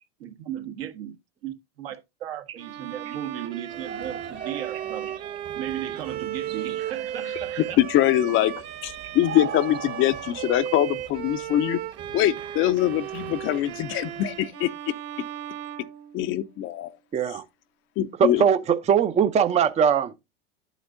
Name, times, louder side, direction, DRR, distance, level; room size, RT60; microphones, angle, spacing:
voice 1, 0.2-1.1 1.4-7.8, right 11 dB, 70° right, 1.5 m, -36 dB
Bowed string instrument, 2.6-16.7, right 11 dB, 55° right, 1.5 m, -35 dB
sound 1, 3.7-14.5, right 8 dB, 35° right, 1.3 m, -42 dB
voice 2, 7.8-11.8 12.1-14.7 16.1-16.9 18.0-18.4, left 13 dB, 40° left, 0.6 m, -23 dB
voice 3, 17.1-17.4 18.2-20.1, right 7 dB, 20° right, 0.5 m, -21 dB
9.2 x 8.1 x 2.6 m
hypercardioid pair, 90°, 31 cm